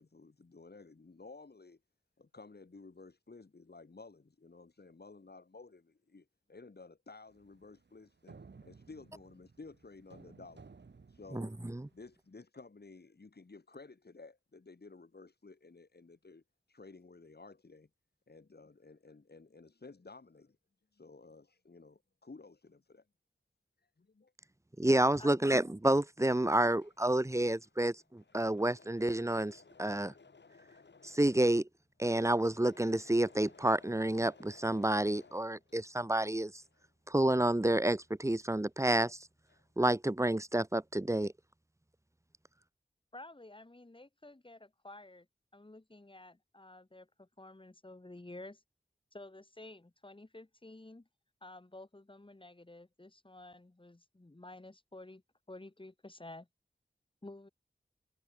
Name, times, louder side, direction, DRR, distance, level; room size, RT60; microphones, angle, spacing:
voice 1, 0.0-1.8 2.2-8.4 8.6-10.6 11.1-11.5 11.9-16.4 16.7-17.9 18.3-20.6 20.9-23.1 23.8-24.3, left 3 dB, 65° left, 3.3 m, -54 dB
sound 1, 7.3-12.1, right 4 dB, 80° right, 1.7 m, -58 dB
voice 2, 11.3-11.9 24.8-30.1 31.0-31.7 32.0-36.5 37.1-39.2 39.8-41.3, right 1 dB, 15° right, 0.8 m, -29 dB
voice 3, 25.2-25.5 43.1-45.3 45.5-48.6 49.1-51.1 51.4-55.2 55.5-56.5 57.2-57.5, left 2 dB, 30° left, 2.2 m, -51 dB
Engine / Mechanisms, 26.6-36.2 36.5-38.9 39.1-39.8, left 4 dB, 90° left, 3.2 m, -61 dB
wide cardioid pair, 50°, 18 cm